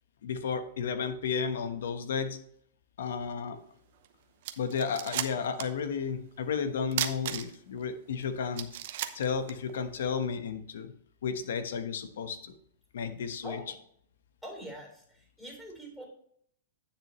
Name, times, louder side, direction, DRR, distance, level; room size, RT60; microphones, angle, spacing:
voice 1, 0.2-2.4 3.0-3.6 4.6-8.7 9.1-10.9 11.2-12.5 12.9-13.6, left 6 dB, 75° left, 10 dB, 1.1 m, -33 dB
sound 1, 4.0-4.1 4.4-5.8 6.1-6.2 6.9-7.8 8.2-8.3 8.5-10.1, right 12 dB, 60° right, 0.7 m, -34 dB
voice 2, 13.4-13.8 14.4-16.1, right 1 dB, ahead, -1 dB, 3.3 m, -44 dB
10.0 x 6.5 x 3.1 m, 0.66 s
hypercardioid pair, 130°, 0 cm